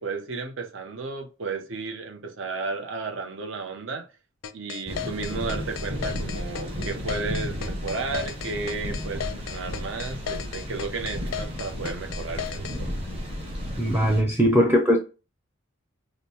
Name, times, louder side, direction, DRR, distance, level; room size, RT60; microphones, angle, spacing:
voice 1, 0.0-4.1 4.5-12.9, right 4 dB, 65° right, 0.7 m, -33 dB
sound 1, 4.4-12.8, left 9 dB, 65° left, 0.4 m, -35 dB
sound 2, 4.9-14.2, equal, 25° right, 0.8 m, -33 dB
voice 2, 13.8-15.0, equal, 10° right, 0.4 m, -20 dB
5.0 x 2.0 x 2.7 m
head